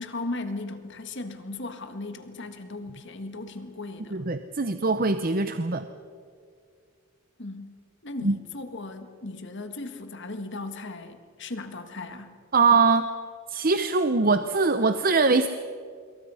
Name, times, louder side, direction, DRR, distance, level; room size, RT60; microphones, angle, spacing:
voice 1, 0.0-4.2 7.4-12.4, left 2 dB, 50° left, 8 dB, 1.6 m, -37 dB
voice 2, 4.1-5.9 8.2-8.4 12.5-13.1 13.5-15.5, right 4 dB, 40° right, 10 dB, 0.7 m, -22 dB
26.5 x 22.5 x 5.6 m, 2.2 s
head